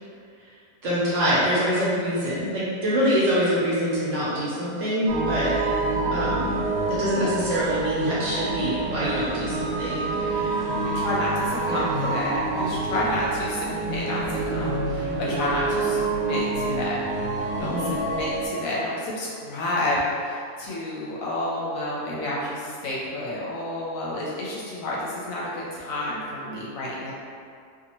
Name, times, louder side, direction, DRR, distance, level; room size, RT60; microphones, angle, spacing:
voice 1, 0.8-5.5 6.1-6.5 6.9-10.7 11.7-11.9 17.6-18.0, equal, 60° right, -9 dB, 1.0 m, -25 dB
sound 1, 5.1-18.5, right 3 dB, 80° right, 1.1 m, -27 dB
voice 2, 10.2-17.0 17.6-17.8 18.0-27.1, left 1 dB, 70° left, -5 dB, 0.9 m, -30 dB
2.7 x 2.4 x 2.9 m, 2.3 s
omnidirectional pair, 1.6 m